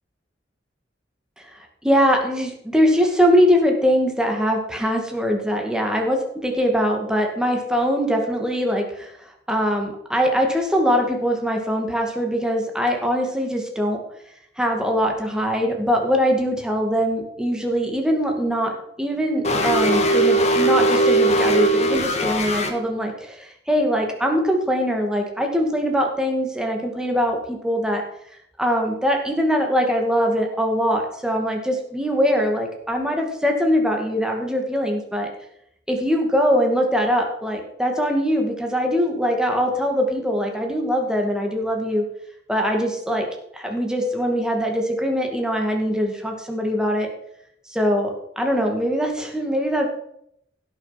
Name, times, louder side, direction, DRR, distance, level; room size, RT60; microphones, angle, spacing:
voice 1, 1.5-14.0 14.6-28.0 28.6-35.3 35.9-42.0 42.5-43.3 43.5-47.1 47.7-49.9, equal, 5° right, 2 dB, 2.1 m, -22 dB
sound 1, 19.4-22.7, right 1 dB, 40° left, 1.7 m, -19 dB
16.0 x 6.5 x 5.8 m, 0.74 s
head